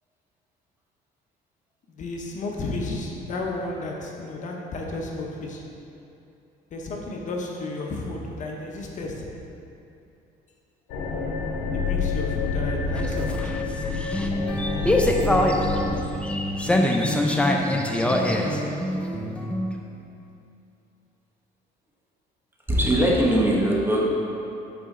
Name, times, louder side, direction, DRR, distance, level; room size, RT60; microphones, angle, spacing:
voice 1, 1.9-5.6 6.7-9.3 11.7-13.5, left 2 dB, 45° left, -1 dB, 0.8 m, -32 dB
sound 1, 10.9-16.0, left 4 dB, 75° left, 0.9 m, -28 dB
sound 2, 12.9-19.7, left 1 dB, 5° left, 0.5 m, -24 dB
voice 2, 22.7-24.0, right 1 dB, 10° right, -4 dB, 1.1 m, -20 dB
8.4 x 4.1 x 3.7 m, 2.7 s
cardioid pair, 110°, 17 cm